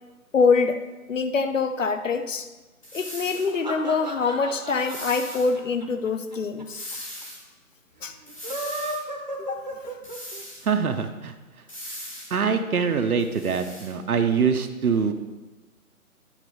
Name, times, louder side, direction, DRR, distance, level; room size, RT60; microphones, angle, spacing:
voice 1, 0.3-0.8 1.1-2.5 2.9-7.1 8.0-8.1 9.4-9.9, left 4 dB, 60° left, 9 dB, 0.8 m, -25 dB
sound 1, 2.8-3.5 4.7-5.5 6.7-7.4 8.3-9.0 10.0-10.7 11.7-12.4 13.2-13.9, equal, 25° left, 1.2 m, -39 dB
sound 2, 3.3-6.6 6.9-7.0 7.2-7.3 8.3-10.4, right 1 dB, 30° right, 0.8 m, -34 dB
voice 2, 10.6-11.3 12.3-15.1, right 6 dB, 75° right, 6 dB, 0.9 m, -24 dB
9.8 x 4.1 x 6.3 m, 1.2 s
hypercardioid pair, 175°, 44 cm